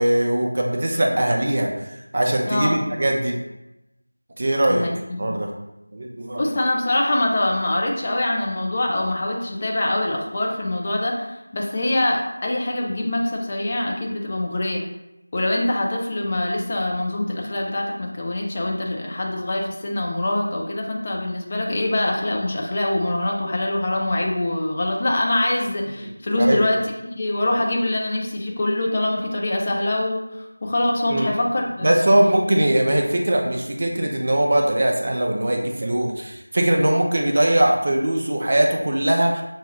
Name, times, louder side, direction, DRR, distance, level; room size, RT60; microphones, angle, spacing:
voice 1, 0.0-3.4 4.4-4.9 5.2-5.5 5.9-6.6 26.0-26.1 26.4-26.7 31.1-31.3 31.8-39.4, right 1 dB, 35° right, 1 dB, 0.5 m, -21 dB
voice 2, 2.5-2.9 4.7-5.4 6.4-14.8 15.3-26.8 27.2-32.2, left 1 dB, 25° left, 0 dB, 0.4 m, -24 dB
6.1 x 2.3 x 2.9 m, 0.92 s
figure-of-eight pair, 175°, 0 cm